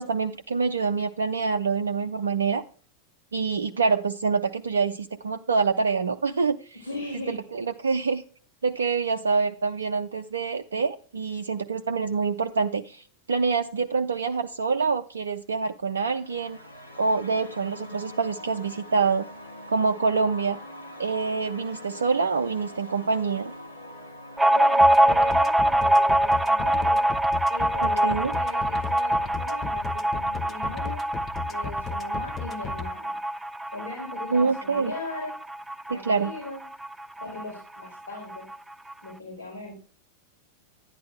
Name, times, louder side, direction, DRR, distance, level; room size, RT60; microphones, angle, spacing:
voice 1, 0.0-2.6 3.3-6.8 7.1-8.2 8.6-16.6 17.0-19.3 19.7-20.6 21.0-23.5 27.8-28.3 34.3-34.9 35.9-36.3, right 4 dB, 70° right, 6 dB, 0.5 m, -26 dB
voice 2, 6.7-7.4 24.5-27.0 27.5-31.0 31.4-33.1 33.7-35.3 35.9-36.6 37.2-38.5 39.0-39.8, left 2 dB, 65° left, -4 dB, 4.5 m, -39 dB
sound 1, 15.9-26.9, left 1 dB, 85° left, 2.4 m, -44 dB
sound 2, 24.4-37.5 37.8-37.9 38.2-38.9, right 1 dB, 5° right, 0.4 m, -24 dB
sound 3, 24.8-32.9, left 6 dB, 20° left, 0.9 m, -35 dB
10.5 x 10.5 x 3.3 m, 0.40 s
figure-of-eight pair, 90°, 0 cm